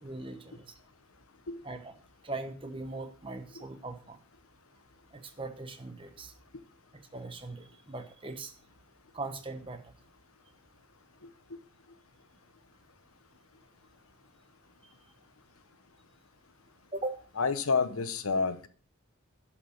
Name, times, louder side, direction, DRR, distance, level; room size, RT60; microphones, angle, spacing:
voice 1, 0.0-0.6 1.6-1.9 2.2-4.2 5.1-6.3 7.1-8.5 9.1-9.8 16.9-17.2, right 2 dB, 25° right, 7 dB, 1.2 m, -40 dB
voice 2, 17.4-18.7, left 4 dB, 80° left, 12 dB, 0.9 m, -28 dB
11.5 x 5.8 x 6.5 m, 0.43 s
head